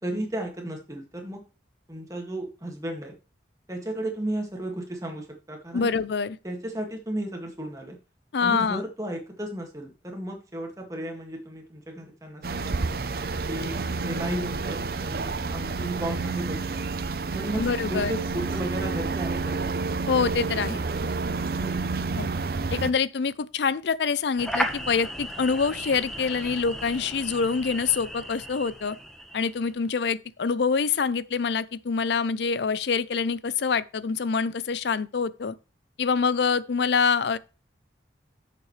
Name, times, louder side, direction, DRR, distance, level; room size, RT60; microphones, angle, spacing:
voice 1, 0.0-1.4 1.9-3.2 3.7-5.9 6.4-8.0 8.4-12.7 13.4-16.8 17.3-19.7 21.6-21.8, right 1 dB, 20° right, 1.9 m, -34 dB
voice 2, 5.7-6.4 8.3-8.8 17.6-18.1 20.1-20.8 22.2-22.3 22.7-29.0 29.3-35.5 36.0-37.4, left 5 dB, 70° left, 0.5 m, -25 dB
sound 1, 12.4-22.9, right 4 dB, 55° right, 0.6 m, -29 dB
sound 2, 24.4-29.7, equal, ahead, 1.1 m, -35 dB
11.0 x 6.8 x 3.2 m
head